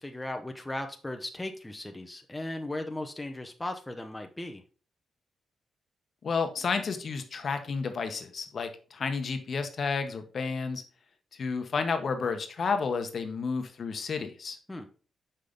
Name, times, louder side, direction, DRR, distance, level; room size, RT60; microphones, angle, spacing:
voice 1, 0.0-4.6 14.7-14.9, left 1 dB, 10° left, 5 dB, 0.7 m, -37 dB
voice 2, 6.2-10.8 11.4-14.6, left 5 dB, 55° left, 7 dB, 0.9 m, -31 dB
5.6 x 5.1 x 3.9 m, 0.37 s
cardioid pair, 100°, 0 cm